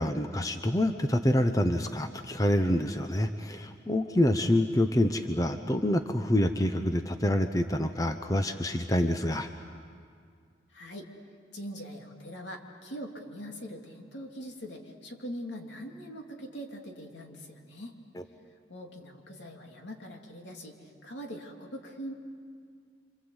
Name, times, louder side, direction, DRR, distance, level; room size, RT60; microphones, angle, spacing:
voice 1, 0.0-9.5, left 1 dB, 20° left, 7 dB, 0.8 m, -27 dB
voice 2, 10.7-11.1 11.5-18.0 18.7-20.7 21.0-22.1, equal, 70° left, 2 dB, 2.9 m, -42 dB
27.5 x 26.5 x 8.0 m, 2.1 s
head